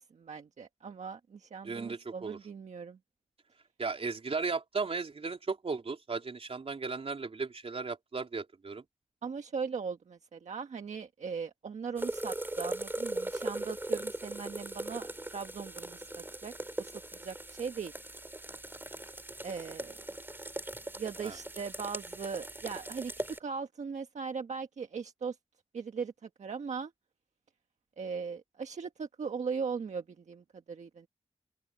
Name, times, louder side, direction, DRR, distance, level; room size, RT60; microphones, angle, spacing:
voice 1, 0.1-3.0 9.2-16.1 16.4-16.5 16.8-17.9 19.4-20.0 21.0-25.4 25.7-26.9 28.0-31.1, right 5 dB, 80° right, 1.4 m, -39 dB
voice 2, 1.6-2.4 3.8-8.8 21.2-21.4, right 4 dB, 55° right, 3.6 m, -36 dB
sound 1, 12.0-23.4, right 1 dB, 20° right, 3.1 m, -39 dB
wide cardioid pair, 85°, 12 cm